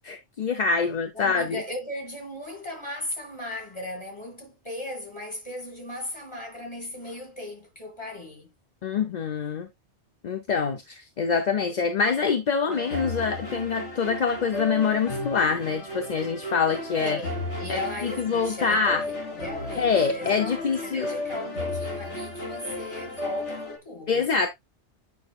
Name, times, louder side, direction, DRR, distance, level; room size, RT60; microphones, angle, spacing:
voice 1, 0.0-1.6 8.8-9.7 10.2-17.2 17.7-19.0 19.8-21.1 24.1-24.5, left 5 dB, 45° left, 0.7 m, -25 dB
voice 2, 1.1-8.5 17.0-24.2, left 1 dB, 25° left, 2.6 m, -37 dB
sound 1, 12.7-23.8, left 1 dB, 80° left, 2.6 m, -34 dB
8.7 x 5.4 x 2.4 m
omnidirectional pair, 1.2 m